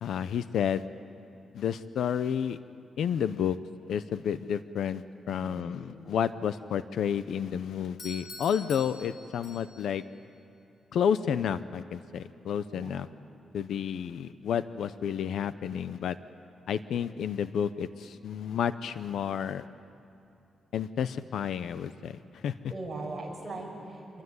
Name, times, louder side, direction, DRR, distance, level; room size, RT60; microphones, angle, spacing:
voice 1, 0.0-0.8 1.5-2.6 3.0-3.6 3.9-10.0 10.9-13.1 13.5-16.2 16.7-19.6 20.7-22.5, left 8 dB, 75° left, 13 dB, 0.7 m, -31 dB
voice 2, 5.2-6.0 12.7-13.1 22.7-24.2, right 2 dB, 10° right, -3 dB, 6.9 m, -40 dB
Doorbell, 8.0-10.0, left 2 dB, 50° left, 3.2 m, -45 dB
26.5 x 22.5 x 9.6 m, 2.8 s
wide cardioid pair, 170°, 0 cm